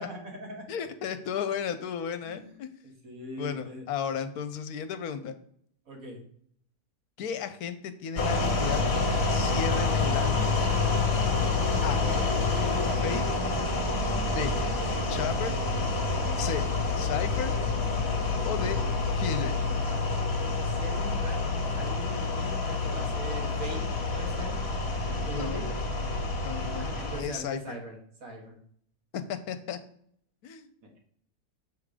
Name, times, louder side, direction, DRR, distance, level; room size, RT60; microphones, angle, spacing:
voice 1, 0.0-0.7 2.2-2.6 2.8-3.9 5.9-6.2 11.9-12.3 14.4-14.7 16.2-16.6 18.3-18.9 20.6-23.8 24.1-24.6 25.3-25.7 26.8-28.6 30.8-31.0, right 1 dB, 60° right, 1 dB, 1.8 m, -41 dB
voice 2, 0.7-2.7 3.4-5.4 7.2-8.8 9.3-10.4 11.8-12.0 13.0-13.2 14.3-14.5 15.1-15.6 16.4-16.6 17.0-17.5 18.4-18.8 19.1-19.6 25.3-25.6 26.4-26.9 27.2-27.8 29.1-29.8 30.4-30.7, left 7 dB, 75° left, 11 dB, 1.1 m, -34 dB
sound 1, 8.2-27.2, left 3 dB, 45° left, 1.2 m, -28 dB
6.5 x 3.6 x 4.9 m, 0.64 s
omnidirectional pair, 1.6 m